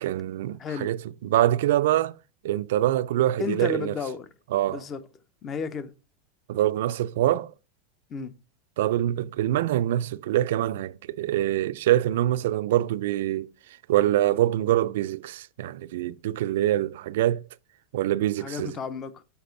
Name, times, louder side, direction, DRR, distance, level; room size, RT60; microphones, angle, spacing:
voice 1, 0.0-2.1 2.4-4.0 4.5-4.8 6.5-7.5 8.8-13.5 13.9-17.4 17.9-18.8, right 13 dB, 70° right, 0.4 m, -24 dB
voice 2, 0.6-0.9 3.4-4.3 4.7-5.0 5.4-5.9 8.1-8.3 18.4-19.2, left 5 dB, 25° left, 0.6 m, -33 dB
7.0 x 5.1 x 3.9 m
supercardioid pair, 160°, 0 cm